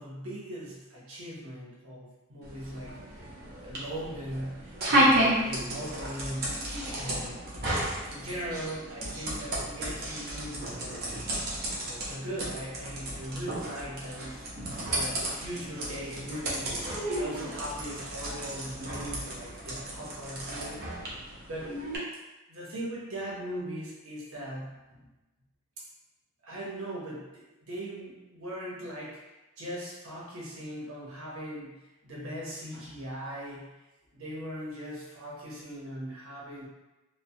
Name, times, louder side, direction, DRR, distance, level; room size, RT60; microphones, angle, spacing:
voice 1, 0.0-3.3 3.6-7.5 8.1-11.1 11.8-20.8 21.5-21.7 22.5-25.1 26.4-29.2 29.6-33.7 34.1-36.7, equal, 75° right, -5 dB, 0.9 m, -39 dB
sound 1, 2.4-22.0, right 1 dB, 45° right, 0.7 m, -32 dB
3.2 x 2.0 x 2.7 m, 1.1 s
head